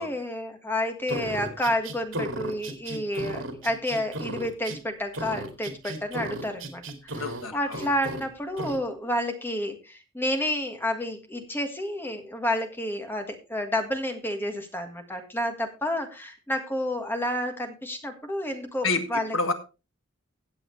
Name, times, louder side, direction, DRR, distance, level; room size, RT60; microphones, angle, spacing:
voice 1, 0.0-19.4, left 1 dB, 10° left, 5 dB, 1.7 m, -30 dB
sound 1, 1.1-4.8 5.1-7.4 7.7-8.2 8.6-8.8, right 1 dB, 90° right, 2.1 m, -35 dB
voice 2, 7.1-7.8 18.8-19.5, left 3 dB, 80° left, 7 dB, 1.6 m, -29 dB
16.0 x 7.8 x 3.2 m, 0.30 s
head